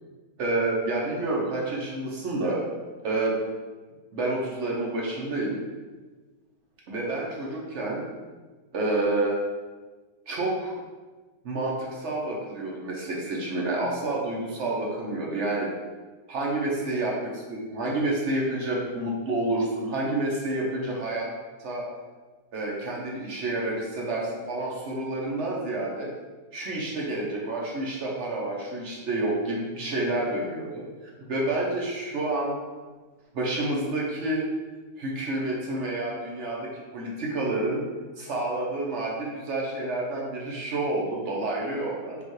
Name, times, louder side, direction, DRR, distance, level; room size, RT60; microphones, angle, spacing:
voice 1, 0.4-2.6 3.0-3.4 4.1-5.6 6.9-8.0 8.7-9.4 10.3-10.7 11.4-15.7 16.3-21.3 21.6-21.8 22.5-26.1 26.5-32.6 33.3-34.5 35.0-37.8 38.2-42.2, right 2 dB, 55° right, -3 dB, 0.9 m, -29 dB
5.3 x 2.3 x 3.1 m, 1.3 s
omnidirectional pair, 1.6 m